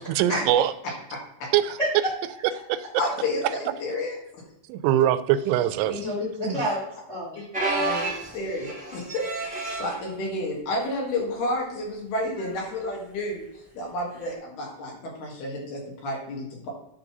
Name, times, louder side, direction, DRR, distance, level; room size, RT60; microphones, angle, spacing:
voice 1, 0.2-0.7 1.5-1.8 2.7-2.8 4.7-6.0 6.4-6.6, right 11 dB, 85° right, 13 dB, 2.6 m, -22 dB
voice 2, 1.1-1.5 3.0-4.1 7.4-7.5 7.8-8.1 8.3-13.4 13.7-16.7, left 1 dB, 70° left, -2 dB, 3.6 m, -31 dB
voice 3, 5.8-8.0, equal, 30° left, -5 dB, 1.3 m, -30 dB
sound 1, 7.5-10.0 10.7-11.0 11.3-11.4 12.4-12.6 14.2-14.3, right 2 dB, 5° right, 0.6 m, -30 dB
10.5 x 4.0 x 5.8 m, 0.81 s
omnidirectional pair, 4.9 m